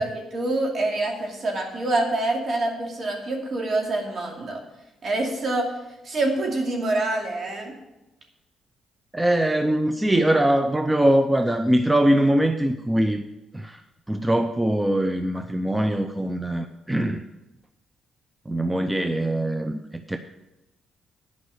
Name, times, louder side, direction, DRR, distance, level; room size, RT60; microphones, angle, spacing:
voice 1, 0.0-4.6 5.0-5.7 6.0-7.7, right 2 dB, 50° right, 0 dB, 2.6 m, -26 dB
voice 2, 9.1-13.2 13.5-13.8 14.1-17.2 18.5-20.2, right 1 dB, 10° right, 8 dB, 0.5 m, -22 dB
10.0 x 5.2 x 8.1 m, 0.98 s
cardioid pair, 90°, 0 cm